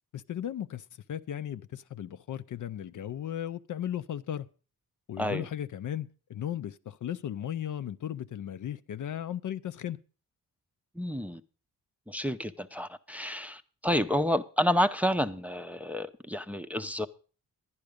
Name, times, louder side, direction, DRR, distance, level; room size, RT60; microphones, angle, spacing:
voice 1, 0.1-4.5 5.1-10.0, left 10 dB, 55° left, 0.5 m, -36 dB
voice 2, 11.0-11.4 12.1-17.1, equal, 5° right, 0.6 m, -29 dB
11.0 x 10.5 x 5.1 m
cardioid pair, 95°, 37 cm